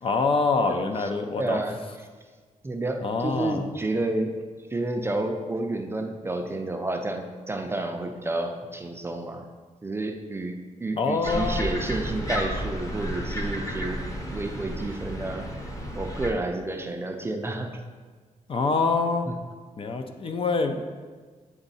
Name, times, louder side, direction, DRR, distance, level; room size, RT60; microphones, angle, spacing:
voice 1, 0.0-1.6 3.0-3.7 10.9-11.8 18.5-19.3 19.8-20.8, left 4 dB, 40° left, 6 dB, 0.5 m, -25 dB
voice 2, 0.6-1.1 1.4-1.8 2.6-4.3 4.7-9.5 9.8-14.0 14.3-15.5 16.0-17.8 19.3-19.4, right 2 dB, 15° right, 4 dB, 0.4 m, -30 dB
sound 1, 11.2-16.3, equal, 25° left, 0.9 m, -32 dB
8.9 x 3.6 x 4.1 m, 1.5 s
wide cardioid pair, 145°, 14 cm